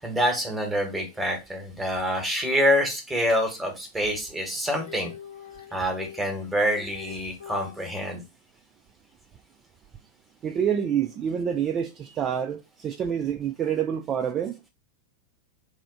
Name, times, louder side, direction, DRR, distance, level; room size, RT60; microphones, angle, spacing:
voice 1, 0.0-5.1 5.7-8.2, equal, 5° right, 1.1 m, -26 dB
Female singing, 4.6-7.9 9.9-10.0, left 8 dB, 75° left, 0.8 m, -43 dB
voice 2, 10.4-14.5, right 8 dB, 30° right, 0.3 m, -27 dB
3.4 x 2.4 x 3.7 m
figure-of-eight pair, 90°, 0 cm